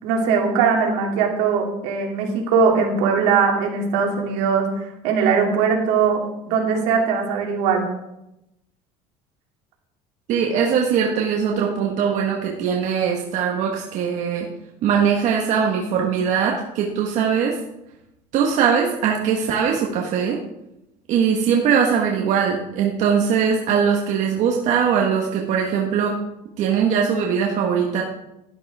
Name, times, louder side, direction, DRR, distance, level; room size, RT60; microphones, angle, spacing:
voice 1, 0.0-4.7 5.0-7.8, right 5 dB, 80° right, 0 dB, 3.1 m, -20 dB
voice 2, 10.3-14.5 14.8-17.6 18.3-20.4 21.1-26.2 26.6-28.0, right 7 dB, 55° right, -1 dB, 1.6 m, -21 dB
11.5 x 11.5 x 3.7 m, 0.88 s
cardioid pair, 135°, 15 cm